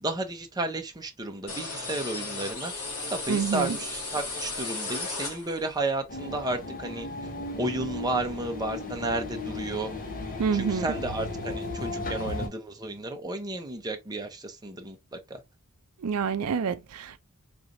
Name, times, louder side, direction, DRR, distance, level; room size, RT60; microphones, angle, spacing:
voice 1, 0.0-2.7 3.1-7.1 7.6-9.9 10.5-15.4, right 2 dB, 20° right, 0.7 m, -32 dB
sound 1, 1.5-5.8, left 3 dB, 80° left, 1.7 m, -35 dB
voice 2, 3.3-3.8 10.4-10.9 16.0-17.2, right 6 dB, 75° right, 0.4 m, -27 dB
sound 2, 6.1-12.5, left 2 dB, 40° left, 1.0 m, -35 dB
3.9 x 3.3 x 2.6 m
head